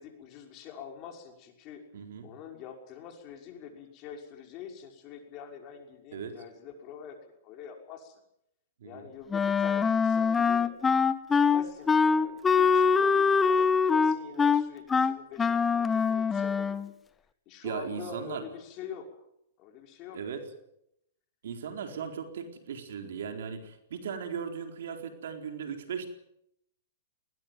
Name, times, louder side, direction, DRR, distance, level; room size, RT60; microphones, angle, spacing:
voice 1, 0.0-1.8 2.2-7.2 7.4-8.2 8.8-10.7 11.3-16.8 17.5-19.2 19.6-20.4 21.9-22.0, left 7 dB, 40° left, 3 dB, 5.9 m, -45 dB
voice 2, 1.9-2.3 6.1-6.4 8.8-9.1 17.6-18.4 20.1-20.4 21.4-26.1, right 7 dB, 75° right, 6 dB, 4.2 m, -37 dB
Wind instrument woodwind instrument, 9.3-16.9, left 5 dB, 15° left, 1.2 m, -24 dB
20.0 x 20.0 x 9.4 m, 0.77 s
hypercardioid pair, 125°, 0 cm